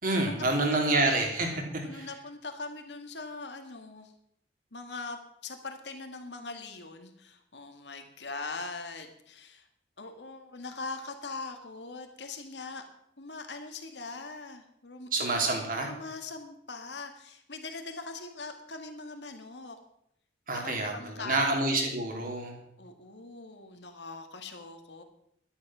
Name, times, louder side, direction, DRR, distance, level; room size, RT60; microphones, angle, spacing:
voice 1, 0.0-1.6 1.9-2.1 15.1-15.9 20.5-22.6, right 2 dB, 50° right, 2 dB, 3.1 m, -28 dB
voice 2, 1.8-4.1 4.7-9.7 10.0-12.8 13.2-15.1 15.9-19.8 20.5-21.4 22.8-25.0, left 3 dB, 80° left, 5 dB, 1.8 m, -41 dB
12.0 x 10.0 x 6.1 m, 0.72 s
head